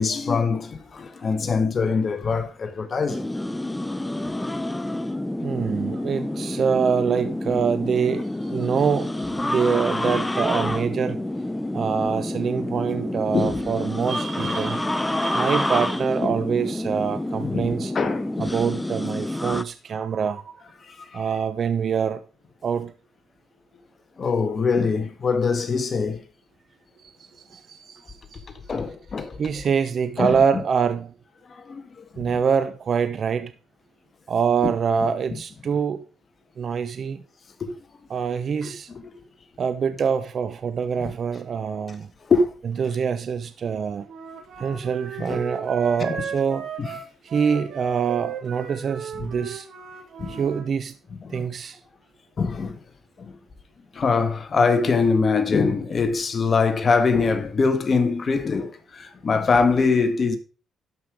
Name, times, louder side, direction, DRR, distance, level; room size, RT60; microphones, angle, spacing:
voice 1, 0.0-3.3 10.0-10.2 13.3-13.6 14.4-14.6 17.4-18.5 20.8-21.2 24.2-26.2 28.7-29.4 30.2-30.4 31.5-31.8 32.1-32.3 37.6-37.7 38.6-39.0 42.3-42.5 45.2-45.4 46.8-46.9 50.2-50.4 51.3-51.4 52.4-52.8 53.2-53.3 53.9-60.4, left 4 dB, 40° left, 1.7 m, -23 dB
sound 1, 3.1-19.6, left 1 dB, 10° left, 0.8 m, -28 dB
voice 2, 5.4-11.2 11.7-17.9 18.4-20.6 21.1-22.2 22.6-22.9 27.5-28.4 29.4-31.1 32.2-33.5 34.3-36.0 36.6-37.2 38.1-38.9 39.6-42.1 42.8-44.1 44.6-46.7 47.2-49.7 50.3-50.9 51.3-51.8, right 6 dB, 50° right, 0.9 m, -25 dB
Wind instrument woodwind instrument, 44.1-50.6, right 7 dB, 70° right, 4.1 m, -36 dB
12.0 x 5.7 x 5.0 m
cardioid pair, 90°, 0 cm